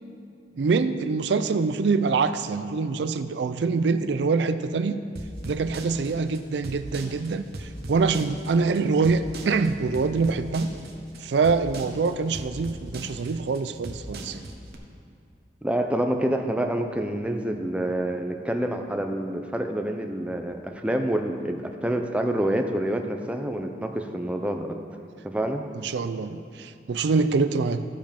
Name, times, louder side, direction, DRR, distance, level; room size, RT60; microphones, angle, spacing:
voice 1, 0.6-5.0 5.5-10.7 11.2-14.4 25.8-27.9, right 4 dB, 80° right, 11 dB, 0.4 m, -25 dB
sound 1, 5.2-14.8, right 1 dB, 60° right, 1.1 m, -38 dB
voice 2, 15.6-24.8 25.2-25.6, right 1 dB, 5° right, 4 dB, 0.6 m, -27 dB
15.0 x 5.3 x 5.1 m, 2.6 s
head